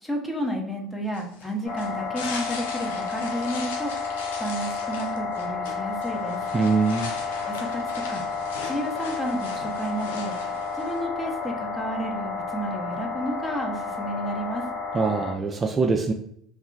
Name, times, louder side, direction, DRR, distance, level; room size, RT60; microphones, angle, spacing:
voice 1, 0.0-4.1 4.4-6.4 7.5-8.2 8.6-10.4 10.7-14.7, right 1 dB, 10° left, 1 dB, 0.8 m, -31 dB
sound 1, 1.1-11.0, left 4 dB, 90° left, 0.5 m, -40 dB
sound 2, 1.6-15.3, left 5 dB, 65° left, 1.1 m, -31 dB
voice 2, 6.5-7.1 14.9-16.1, right 4 dB, 30° right, 3 dB, 0.3 m, -23 dB
2.4 x 2.0 x 3.8 m, 0.66 s
supercardioid pair, 85°, 0 cm